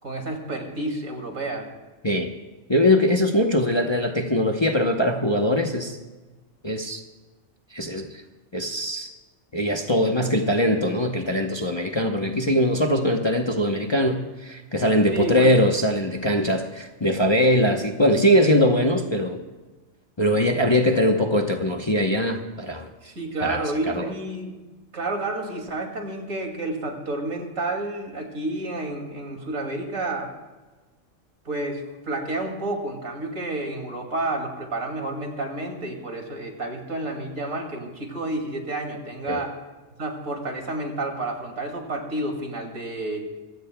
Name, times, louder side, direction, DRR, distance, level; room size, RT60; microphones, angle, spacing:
voice 1, 0.0-1.7 15.1-15.5 23.0-24.5 24.9-30.3 31.4-39.5 40.0-43.3, right 2 dB, 70° right, 2 dB, 2.9 m, -30 dB
voice 2, 2.7-6.0 6.6-7.0 7.7-8.2 8.5-9.1 9.5-19.4 20.2-22.9 23.4-23.6 23.9-24.0 39.3-39.4, equal, 25° left, 2 dB, 0.8 m, -21 dB
25.5 x 16.0 x 2.3 m, 1.2 s
omnidirectional pair, 1.4 m